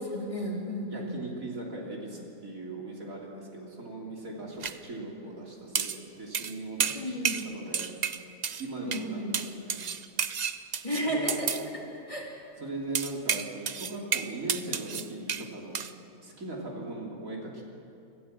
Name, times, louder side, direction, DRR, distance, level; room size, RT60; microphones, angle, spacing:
voice 1, 0.0-1.1 6.9-7.4 8.8-9.4 10.8-12.3, equal, 20° left, -3 dB, 3.3 m, -33 dB
voice 2, 0.9-8.0 8.6-9.8 10.9-11.3 12.6-15.8 16.2-17.6, right 2 dB, 70° right, -2 dB, 3.7 m, -39 dB
sound 1, 4.6-4.8 5.8-6.0 6.3-6.5 6.8-7.5 7.7-8.7 8.9-9.1 9.3-11.7 12.9-15.5 15.7-15.9, right 7 dB, 50° right, 0.5 m, -31 dB
25.5 x 15.5 x 7.5 m, 2.6 s
omnidirectional pair, 1.5 m